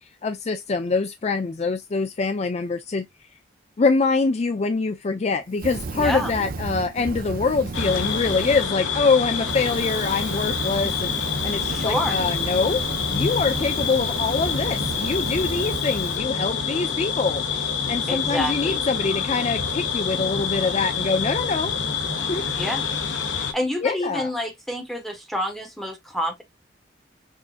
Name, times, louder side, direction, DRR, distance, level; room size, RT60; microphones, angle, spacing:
voice 1, 0.2-3.1 3.8-12.8 13.1-21.7 22.3-22.4 23.8-24.3, left 4 dB, 35° left, 0.4 m, -24 dB
Fire, 5.5-8.7 9.1-16.2, right 3 dB, 50° right, 0.6 m, -33 dB
voice 2, 5.9-6.3 11.7-12.2 18.1-18.8 22.6-22.9 23.3-26.4, left 1 dB, ahead, 1.2 m, -28 dB
sound 1, 7.7-23.5, left 6 dB, 80° left, 1.0 m, -27 dB
6.2 x 2.7 x 2.4 m
head